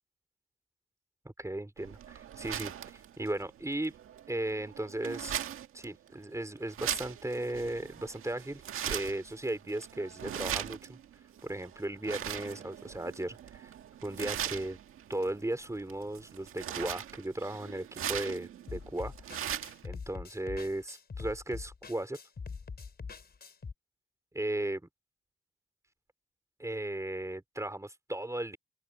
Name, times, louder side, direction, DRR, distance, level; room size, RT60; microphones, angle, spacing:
voice 1, 1.2-3.9 4.3-5.4 5.7-11.0 11.4-13.7 14.0-14.8 15.1-19.1 19.8-22.2 24.3-24.8 26.6-28.6, right 1 dB, 15° right, 4.0 m, -36 dB
sound 1, 1.8-19.9, right 10 dB, 80° right, 1.8 m, -40 dB
sound 2, 18.7-23.7, left 5 dB, 50° left, 4.7 m, -43 dB
open air
supercardioid pair, 50°, 21 cm